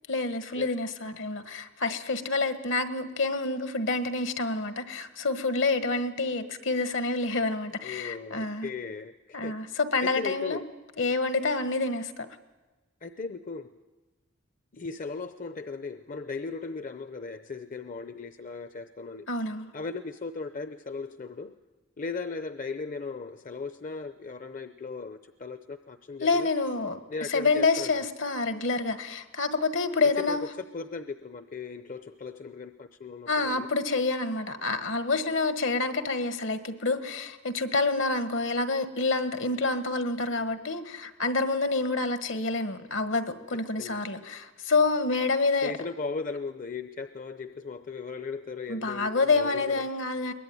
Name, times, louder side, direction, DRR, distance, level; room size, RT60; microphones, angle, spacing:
voice 1, 0.1-8.7 9.3-10.6 11.0-12.3 19.3-19.7 26.2-27.0 27.3-30.4 33.3-45.7 48.7-50.3, left 3 dB, 70° left, 1.6 m, -28 dB
voice 2, 7.8-9.7 10.0-10.6 13.0-13.7 14.7-19.3 19.7-21.6 22.0-26.5 27.1-27.9 30.2-30.4 30.7-33.7 43.8-44.0 45.6-49.9, left 4 dB, 40° left, 0.7 m, -37 dB
22.5 x 20.5 x 9.3 m
head